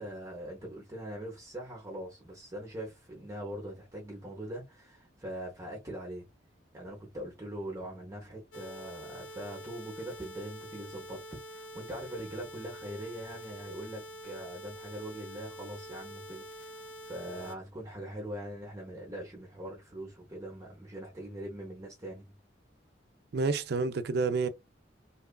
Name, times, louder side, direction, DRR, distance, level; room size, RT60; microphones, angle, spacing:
voice 1, 0.0-6.3 6.7-11.2 11.5-22.4, right 1 dB, 15° right, 0.7 m, -42 dB
sound 1, 8.5-17.6, equal, 75° left, 0.5 m, -46 dB
voice 2, 23.3-24.5, right 4 dB, 60° right, 0.4 m, -29 dB
2.9 x 2.3 x 2.2 m
head